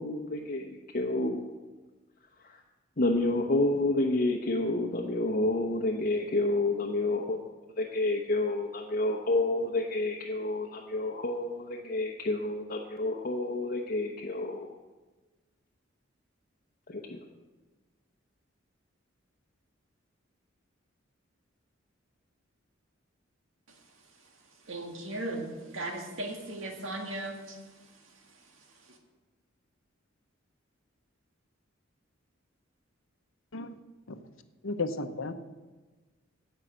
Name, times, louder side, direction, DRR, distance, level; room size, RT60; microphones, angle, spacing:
voice 1, 0.0-1.5 2.4-2.6 3.0-7.4 7.8-14.8 16.9-17.2, left 2 dB, 45° left, 0.9 m, -29 dB
voice 2, 24.7-27.6, right 2 dB, 75° right, 1.9 m, -37 dB
voice 3, 34.6-35.3, left 3 dB, 80° left, 0.8 m, -33 dB
17.0 x 5.6 x 6.3 m
head